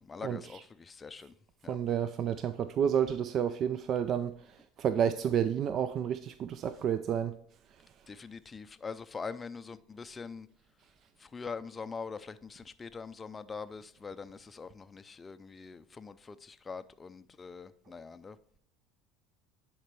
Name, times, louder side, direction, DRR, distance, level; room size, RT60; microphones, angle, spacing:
voice 1, 0.0-1.3 1.6-1.8 8.1-10.5 11.2-18.4, left 5 dB, 20° left, 0.4 m, -43 dB
voice 2, 1.7-4.3 4.8-7.4, right 8 dB, 45° right, 0.4 m, -30 dB
10.5 x 4.4 x 3.1 m
supercardioid pair, 100°, 0 cm